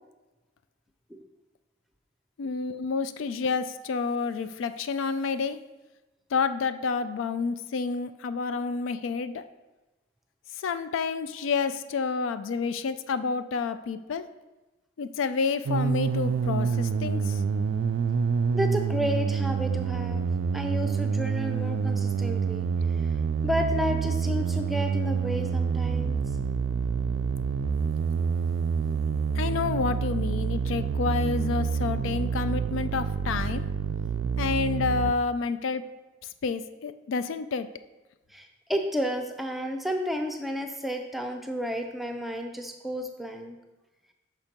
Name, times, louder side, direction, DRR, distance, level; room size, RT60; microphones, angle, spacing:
voice 1, 2.4-5.6 6.3-9.4 10.5-14.2 15.0-17.4 29.3-33.6 34.4-35.8 36.2-37.7, left 4 dB, 85° left, 12 dB, 0.4 m, -29 dB
sound 1, 15.7-35.1, right 6 dB, 80° right, 0.3 m, -27 dB
voice 2, 18.5-22.7 23.4-26.2 28.2-28.3 38.3-43.6, equal, ahead, 4 dB, 0.5 m, -31 dB
5.9 x 4.4 x 5.1 m, 1.1 s
head